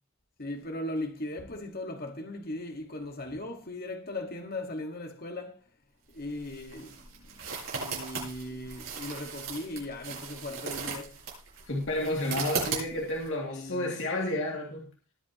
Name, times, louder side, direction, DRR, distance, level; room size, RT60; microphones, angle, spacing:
voice 1, 0.4-5.6 6.1-7.4 7.7-11.2 13.4-14.0, left 1 dB, 45° left, 1.8 m, -38 dB
sound 1, 6.1-13.3, right 5 dB, 70° right, 6.9 m, -37 dB
voice 2, 11.7-14.9, left 1 dB, 60° left, 2.5 m, -31 dB
20.0 x 8.7 x 3.0 m
head